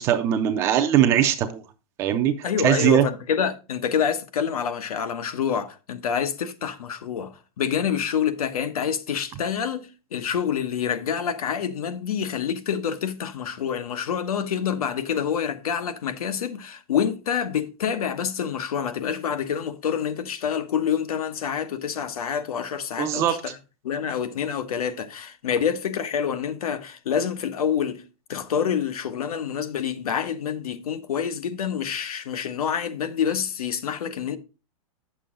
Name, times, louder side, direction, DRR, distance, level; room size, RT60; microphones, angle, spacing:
voice 1, 0.0-1.6 2.0-2.3 2.6-3.1 23.0-23.3, right 10 dB, 15° right, 0.4 m, -20 dB
voice 2, 2.4-23.5 23.8-28.0 28.3-34.4, left 8 dB, 90° left, 1.1 m, -27 dB
8.4 x 6.9 x 3.7 m
supercardioid pair, 170°, 18 cm